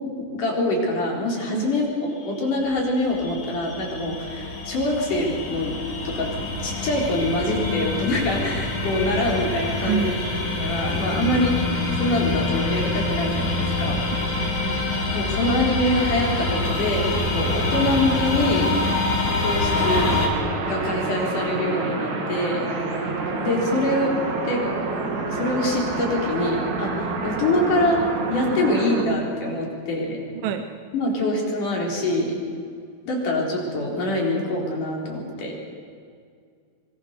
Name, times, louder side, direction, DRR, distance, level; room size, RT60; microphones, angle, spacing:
voice 1, 0.0-5.8 6.0-6.3 6.6-10.2 10.6-11.6 12.0-14.0 15.1-18.7 19.0-20.1 20.6-22.7 23.4-24.7 25.3-28.0 28.3-30.2 30.9-32.4 33.1-35.5, left 1 dB, 65° left, -1 dB, 5.6 m, -24 dB
sound 1, 2.5-20.3, left 2 dB, 35° left, 3.4 m, -26 dB
voice 2, 14.4-15.1 30.4-30.7, right 7 dB, 75° right, 7 dB, 2.6 m, -27 dB
sound 2, 19.7-29.0, right 3 dB, 55° right, 3.8 m, -28 dB
25.0 x 23.0 x 6.8 m, 2.2 s
omnidirectional pair, 4.0 m